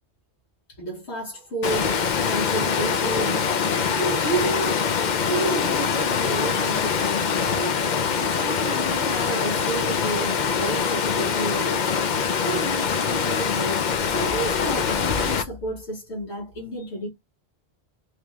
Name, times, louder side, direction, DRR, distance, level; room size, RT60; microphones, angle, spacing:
voice 1, 0.8-4.8 5.3-17.1, right 2 dB, 80° left, 1.5 m, -31 dB
Water, 1.6-15.4, left 6 dB, 50° left, 0.7 m, -24 dB
3.3 x 3.1 x 3.5 m
omnidirectional pair, 1.1 m